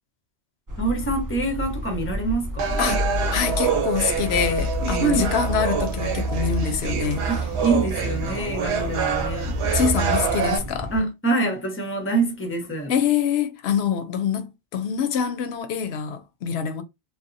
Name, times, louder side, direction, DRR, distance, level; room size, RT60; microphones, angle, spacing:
sound 1, 0.7-11.0, equal, 30° right, 0.4 m, -29 dB
voice 1, 0.8-2.8 4.8-5.3 7.3-9.6 10.9-12.9, right 3 dB, 15° left, 0.6 m, -25 dB
sound 2, 2.6-10.6, right 6 dB, 85° right, 0.9 m, -27 dB
voice 2, 2.8-7.3 9.7-10.9 12.9-16.8, left 7 dB, 75° left, 0.8 m, -25 dB
2.8 x 2.1 x 2.5 m
omnidirectional pair, 1.1 m